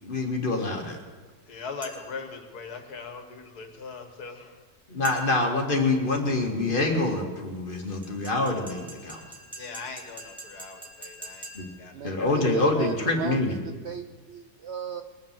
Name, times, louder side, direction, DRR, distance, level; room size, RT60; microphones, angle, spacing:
voice 1, 0.0-1.0 4.9-9.2 11.5-11.7 12.0-13.5, left 2 dB, 35° left, 0 dB, 2.3 m, -26 dB
voice 2, 1.5-4.6 9.6-11.5 11.8-12.5, left 4 dB, 75° left, 6 dB, 2.0 m, -40 dB
sound 1, 1.8-2.3 5.0-5.6 8.0-11.9, right 1 dB, 5° right, 3.1 m, -45 dB
voice 3, 11.9-15.0, right 7 dB, 65° right, 8 dB, 0.7 m, -37 dB
21.0 x 7.5 x 7.5 m, 1.4 s
omnidirectional pair, 1.7 m